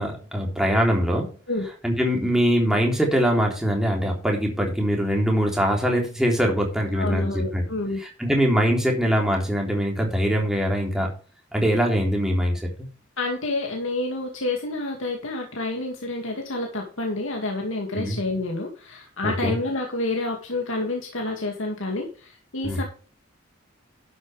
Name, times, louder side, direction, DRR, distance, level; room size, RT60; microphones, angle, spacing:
voice 1, 0.0-1.3 1.8-7.6 8.0-11.1 11.5-12.9 17.9-18.2 19.2-19.5 22.6-22.8, equal, 5° right, 0 dB, 3.3 m, -23 dB
voice 2, 6.9-8.0 13.2-22.8, left 2 dB, 80° left, 1 dB, 2.3 m, -29 dB
11.5 x 8.4 x 3.4 m, 0.37 s
head